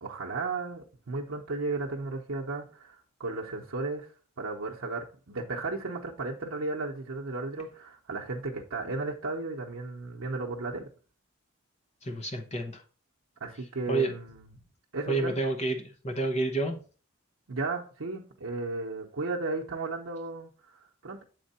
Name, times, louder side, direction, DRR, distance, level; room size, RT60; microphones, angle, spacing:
voice 1, 0.0-4.1 4.4-10.9 13.4-14.6 14.9-15.4 17.5-21.2, right 3 dB, 80° right, 0.8 m, -34 dB
voice 2, 12.0-12.8 13.9-14.1 15.1-16.8, right 2 dB, 30° left, 0.9 m, -29 dB
7.7 x 3.6 x 4.2 m
head